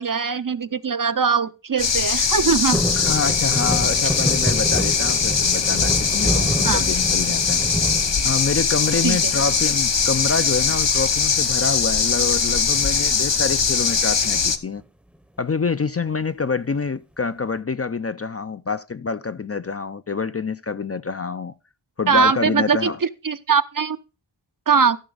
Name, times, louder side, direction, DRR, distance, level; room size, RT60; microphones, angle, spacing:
voice 1, 0.0-2.8 6.6-6.8 9.0-9.3 22.1-24.0 24.7-25.0, right 6 dB, 45° right, 0.6 m, -21 dB
sound 1, 1.8-14.6, left 5 dB, 65° left, 0.9 m, -21 dB
sound 2, 2.7-8.9 9.3-9.9 11.2-11.6 11.9-12.0 12.2-12.6 13.4-14.3 14.8-14.9, equal, ahead, 0.7 m, -27 dB
voice 2, 3.0-7.6 8.2-14.8 15.4-21.5 22.0-23.0, left 4 dB, 35° left, 0.4 m, -26 dB
14.0 x 5.9 x 3.9 m
wide cardioid pair, 50°, 46 cm